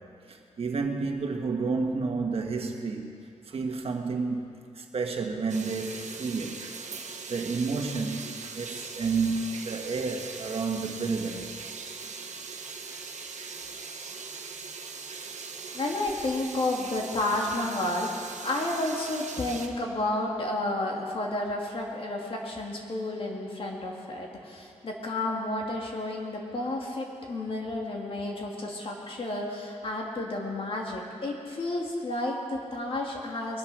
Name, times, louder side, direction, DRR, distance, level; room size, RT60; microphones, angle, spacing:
voice 1, 0.3-3.1 3.5-4.5 4.7-6.7 7.3-11.5, right 4 dB, 55° right, 3 dB, 1.5 m, -30 dB
sound 1, 5.5-19.7, right 5 dB, 80° right, 1.2 m, -40 dB
voice 2, 15.7-33.6, left 2 dB, 50° left, -1 dB, 2.2 m, -31 dB
21.5 x 9.7 x 6.1 m, 2.7 s
wide cardioid pair, 145°, 12 cm